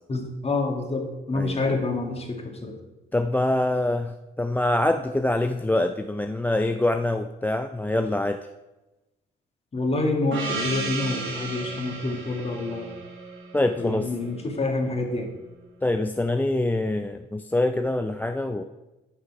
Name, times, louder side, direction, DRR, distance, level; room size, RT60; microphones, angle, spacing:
voice 1, 0.1-2.8 9.7-12.9 13.8-15.3, left 2 dB, 30° left, 2 dB, 2.0 m, -27 dB
voice 2, 1.3-1.7 3.1-8.4 13.5-14.1 15.8-18.6, left 1 dB, 10° left, 7 dB, 0.4 m, -25 dB
Gong, 10.3-14.6, right 3 dB, 85° right, 2.7 m, -34 dB
9.6 x 5.7 x 5.9 m, 1.0 s
cardioid pair, 90°, 20 cm